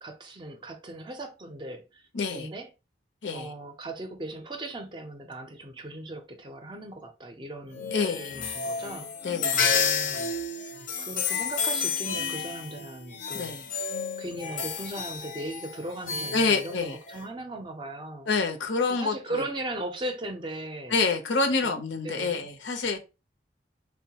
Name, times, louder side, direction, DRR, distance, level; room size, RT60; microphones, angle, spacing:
voice 1, 0.0-2.7 3.3-9.1 9.5-10.2 11.0-13.9 14.2-18.3 18.9-21.0 21.6-21.8 22.0-22.5, right 1 dB, 25° right, 0.4 m, -38 dB
voice 2, 2.1-2.5 3.2-3.5 7.9-8.4 9.2-9.6 13.3-13.6 16.3-17.0 18.3-19.5 20.9-23.0, left 4 dB, 85° left, 0.7 m, -27 dB
sound 1, 7.7-17.2, left 6 dB, 45° left, 0.5 m, -31 dB
3.6 x 2.1 x 2.8 m
head